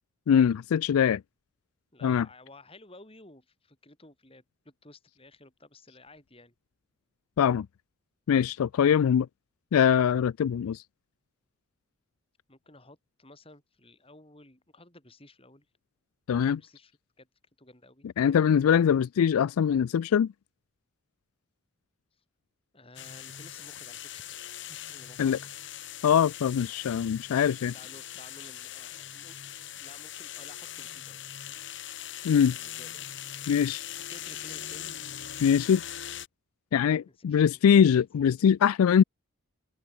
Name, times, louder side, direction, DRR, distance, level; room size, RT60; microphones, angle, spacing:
voice 1, 0.3-1.2 2.0-2.3 7.4-7.7 8.3-9.3 9.7-10.8 16.3-16.6 18.2-20.3 25.2-25.4 26.0-27.7 32.2-32.6 33.5-33.8 35.4-35.8 36.7-39.0, left 8 dB, 85° left, 0.3 m, -22 dB
voice 2, 1.9-6.5 12.5-15.7 16.5-16.9 17.2-17.3 17.6-18.1 22.2-22.3 22.7-25.5 27.7-29.4 29.7-31.6 32.5-33.1 33.9-34.9 37.2-37.9, left 2 dB, 25° left, 4.0 m, -54 dB
sound 1, 23.0-36.3, left 11 dB, 55° left, 2.7 m, -41 dB
open air
head